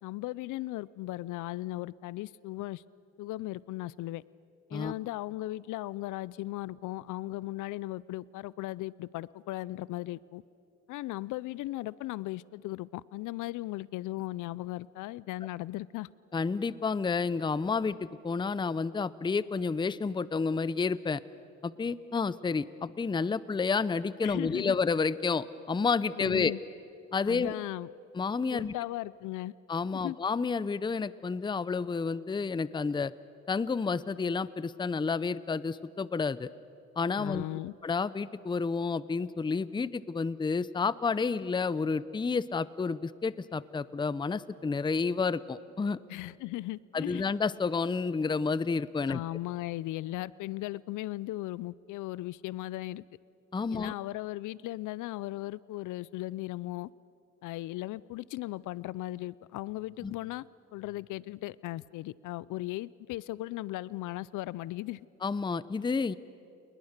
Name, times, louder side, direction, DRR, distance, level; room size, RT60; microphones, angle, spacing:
voice 1, 0.0-2.8 3.2-4.2 4.7-10.4 10.9-16.1 24.2-24.8 26.2-26.6 27.2-27.9 28.5-29.5 29.9-30.2 37.2-37.7 46.1-47.3 49.1-53.0 53.7-56.9 57.4-60.5 60.7-65.1, left 17 dB, 85° left, 21 dB, 0.5 m, -37 dB
voice 2, 16.3-21.2 21.6-26.5 27.1-27.5 28.1-28.7 29.7-33.1 33.5-36.5 37.0-37.4 37.8-46.0 46.9-49.2 53.5-53.9 60.0-60.1 65.2-66.2, left 4 dB, 15° left, 18 dB, 0.5 m, -30 dB
29.5 x 20.5 x 6.6 m, 2.5 s
cardioid pair, 90°, 30 cm